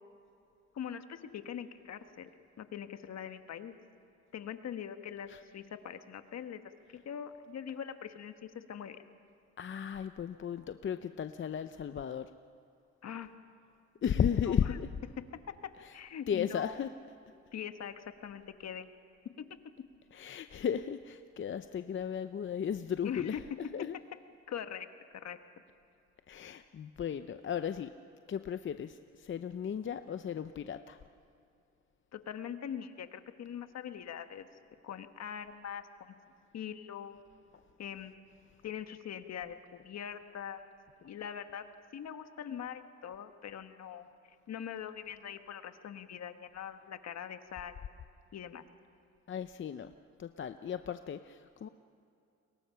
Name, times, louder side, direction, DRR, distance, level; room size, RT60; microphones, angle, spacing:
voice 1, 0.7-2.3 2.6-3.8 4.3-6.6 6.9-9.0 13.0-13.3 14.4-14.8 15.9-16.7 17.5-18.9 19.4-19.5 23.0-23.4 24.5-24.9 25.1-25.4 32.1-34.5 34.8-36.1 36.5-37.2 37.8-38.1 38.6-40.7 41.0-41.6 41.9-44.1 44.5-47.7 48.3-48.6, left 8 dB, 60° left, 9 dB, 1.4 m, -42 dB
voice 2, 9.6-12.3 14.0-14.9 15.8-15.9 16.3-16.9 20.1-23.4 23.7-24.0 26.3-27.9 28.3-31.0 49.3-49.9 50.2-51.7, left 8 dB, 40° left, 10 dB, 0.7 m, -35 dB
30.0 x 22.5 x 5.7 m, 2.5 s
cardioid pair, 90°, 30 cm